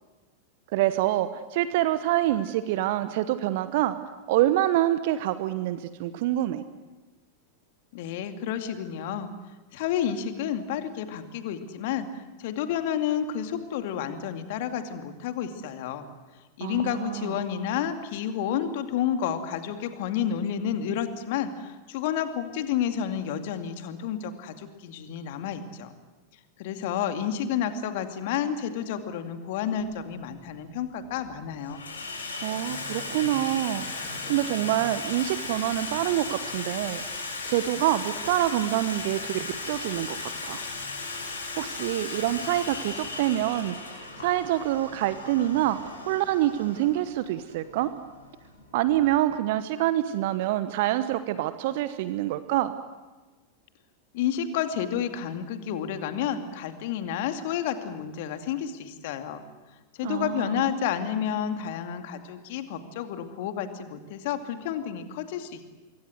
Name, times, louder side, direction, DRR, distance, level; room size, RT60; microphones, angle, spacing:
voice 1, 0.7-4.0 4.3-6.6 16.6-17.4 32.4-40.6 41.6-47.9 48.7-52.7 60.0-60.6, right 14 dB, 50° right, 13 dB, 1.1 m, -26 dB
voice 2, 7.9-9.3 9.7-16.1 16.6-25.9 26.6-31.8 54.1-59.4 60.0-65.7, left 9 dB, 50° left, 8 dB, 2.4 m, -30 dB
Water tap faucet / Sink (filling or washing), 29.7-29.8 30.8-31.2 31.5-49.1, left 3 dB, 70° left, 6.6 m, -37 dB
26.0 x 23.0 x 7.9 m, 1.2 s
figure-of-eight pair, 90°, 0 cm